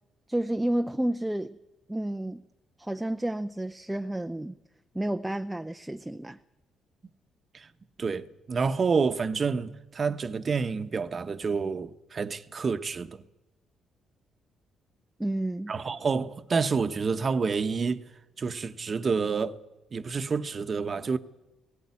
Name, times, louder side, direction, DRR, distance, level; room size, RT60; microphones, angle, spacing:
voice 1, 0.3-1.6 1.9-2.4 2.8-4.6 4.9-6.4 15.2-15.7, right 1 dB, 10° right, 0.6 m, -30 dB
voice 2, 8.0-13.2 15.7-18.0 18.4-19.6 19.9-21.2, right 5 dB, 40° right, 1.0 m, -28 dB
17.0 x 16.5 x 9.8 m
cardioid pair, 90°, 0 cm